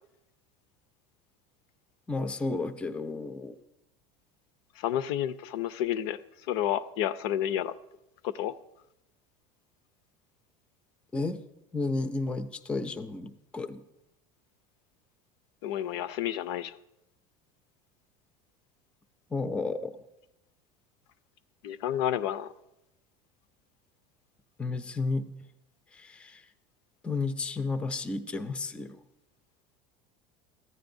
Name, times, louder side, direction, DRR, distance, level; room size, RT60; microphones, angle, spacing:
voice 1, 2.1-3.5 11.1-11.4 11.7-13.8 19.3-20.0 24.6-25.3 25.9-26.4 27.0-29.0, left 3 dB, 10° left, 11 dB, 0.3 m, -32 dB
voice 2, 4.8-6.2 6.5-7.7 8.2-8.5 15.6-16.7 21.6-22.5, left 11 dB, 80° left, 13 dB, 0.4 m, -30 dB
14.5 x 9.7 x 2.6 m, 0.88 s
cardioid pair, 155°, 13 cm